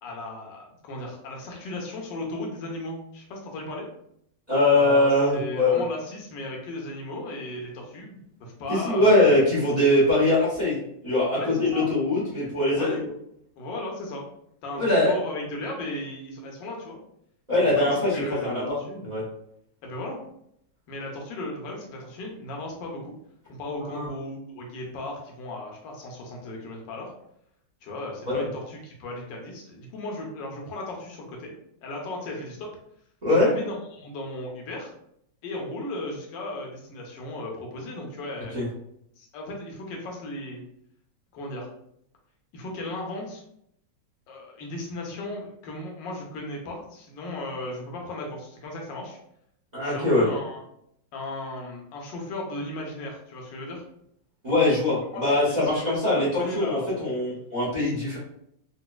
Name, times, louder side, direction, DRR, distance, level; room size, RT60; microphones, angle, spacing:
voice 1, 0.0-3.9 4.7-9.5 11.3-11.9 12.7-13.0 13.6-14.2 14.6-17.0 17.5-19.2 19.8-20.2 20.9-23.1 23.5-27.1 27.8-31.5 31.8-32.7 33.3-34.9 35.4-38.6 39.2-40.6 41.3-41.7 42.5-43.4 44.3-49.2 49.8-50.6 51.1-53.8 55.1-57.4, left 1 dB, 75° left, -1 dB, 1.4 m, -36 dB
voice 2, 4.5-5.8 8.8-10.8 11.0-13.0 14.8-15.1 17.5-18.8 19.0-19.2 23.8-24.0 28.3-28.4 33.2-33.5 38.5-38.6 49.7-50.2 54.4-58.2, left 2 dB, 25° right, -7 dB, 1.0 m, -22 dB
4.0 x 2.5 x 2.3 m, 0.73 s
omnidirectional pair, 2.1 m